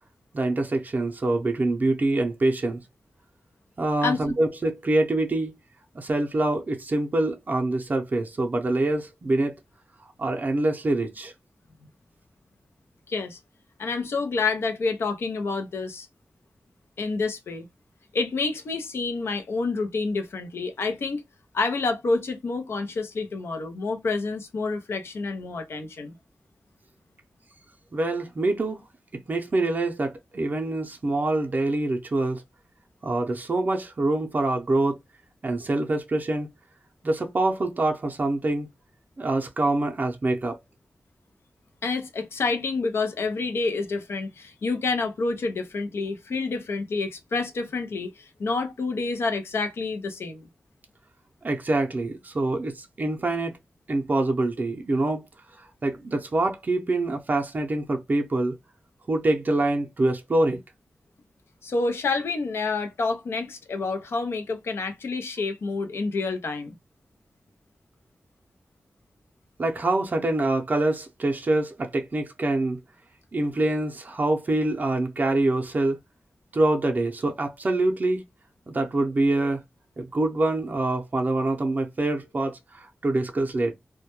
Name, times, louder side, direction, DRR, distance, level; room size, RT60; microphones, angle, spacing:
voice 1, 0.3-2.8 3.8-5.6 6.0-9.6 10.2-11.3 27.9-28.8 29.1-32.4 33.0-35.0 35.4-36.5 37.0-38.7 39.2-40.6 51.4-53.5 53.9-55.3 55.8-58.6 59.1-60.6 69.6-72.8 73.3-76.0 76.5-78.2 78.7-79.6 80.0-83.7, right 2 dB, 45° right, 0.5 m, -25 dB
voice 2, 13.1-13.4 13.8-16.1 17.0-17.7 18.1-21.2 21.5-26.2 41.8-50.5 61.6-66.8, left 3 dB, 90° left, 0.5 m, -28 dB
2.1 x 2.1 x 2.8 m
wide cardioid pair, 75°, 4 cm